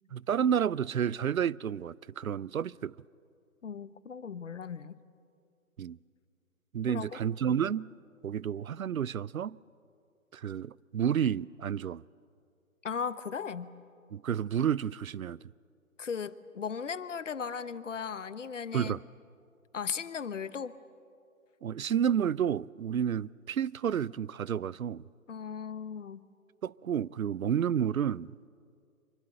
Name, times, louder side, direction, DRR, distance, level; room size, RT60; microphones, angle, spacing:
voice 1, 0.1-2.9 5.8-6.0 6.7-7.9 8.2-9.6 10.3-12.0 14.1-15.4 18.7-19.0 21.6-25.0 26.6-28.5, right 8 dB, 75° right, 0.5 m, -30 dB
voice 2, 3.6-5.0 6.9-7.5 12.8-13.7 16.0-18.9 19.7-20.7 25.3-26.3, left 6 dB, 60° left, 1.0 m, -37 dB
25.0 x 24.0 x 7.8 m
figure-of-eight pair, 140°, 42 cm